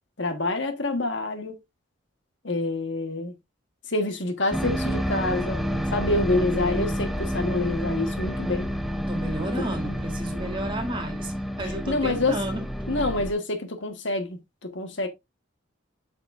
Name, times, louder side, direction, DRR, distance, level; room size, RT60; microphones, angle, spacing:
voice 1, 0.2-1.6 2.4-3.3 3.9-5.6 5.9-8.7 11.9-12.4 12.9-15.1, left 2 dB, 65° left, 1.5 m, -27 dB
sound 1, 4.5-13.3, equal, ahead, 0.7 m, -29 dB
voice 2, 9.1-12.6, right 1 dB, 25° right, 2.4 m, -32 dB
8.5 x 5.9 x 2.6 m
head